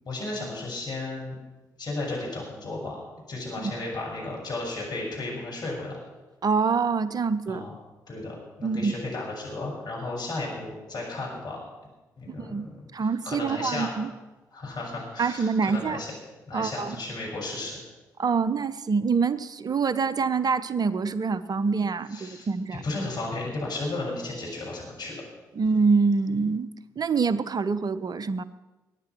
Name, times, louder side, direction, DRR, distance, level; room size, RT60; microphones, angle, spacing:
voice 1, 0.0-1.3 1.8-3.0 3.3-6.0 7.5-7.7 8.1-11.6 12.2-12.9 13.2-13.9 14.5-16.1 16.5-17.8 22.1-25.2, left 2 dB, 50° left, -2 dB, 6.8 m, -34 dB
voice 2, 6.4-7.6 8.6-8.9 12.4-14.1 15.2-16.0 16.5-17.0 18.2-22.8 25.5-28.4, right 5 dB, 45° right, 15 dB, 0.9 m, -25 dB
21.5 x 9.8 x 6.2 m, 1.1 s
hypercardioid pair, 40°, 9 cm